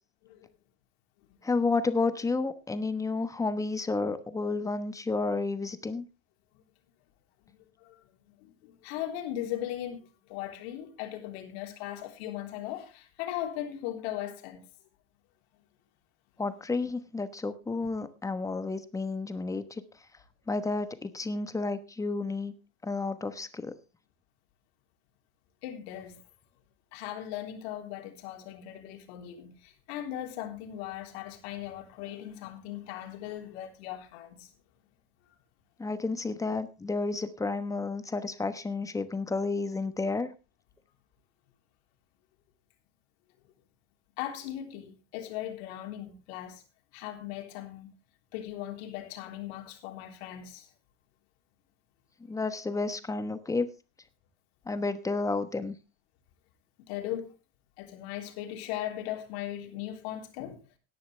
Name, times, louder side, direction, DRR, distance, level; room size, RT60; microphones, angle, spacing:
voice 1, 1.4-6.0 16.4-19.8 20.5-22.5 22.8-23.7 35.8-40.3 52.2-53.7 54.7-55.7, left 3 dB, 10° left, 1.1 m, -31 dB
voice 2, 8.4-14.6 25.6-26.2 26.9-34.5 44.2-46.6 46.9-47.9 48.3-50.7 56.9-57.3 57.8-60.6, left 12 dB, 80° left, 3.5 m, -38 dB
17.5 x 10.5 x 3.3 m
cardioid pair, 150°, 31 cm